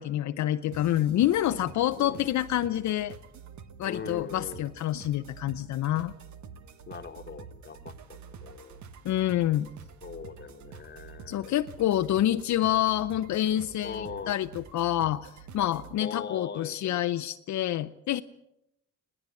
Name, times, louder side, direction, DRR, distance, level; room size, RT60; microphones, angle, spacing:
voice 1, 0.0-3.1 3.8-6.1 9.0-9.7 11.3-18.2, left 13 dB, 70° left, 9 dB, 0.7 m, -27 dB
sound 1, 0.7-16.0, right 6 dB, 70° right, 1.5 m, -48 dB
voice 2, 3.8-4.6 6.9-8.8 10.0-11.6 12.0-12.2 13.8-14.4 16.0-17.0, left 6 dB, 35° left, 8 dB, 1.4 m, -41 dB
19.5 x 18.0 x 8.3 m, 0.83 s
cardioid pair, 90°, 30 cm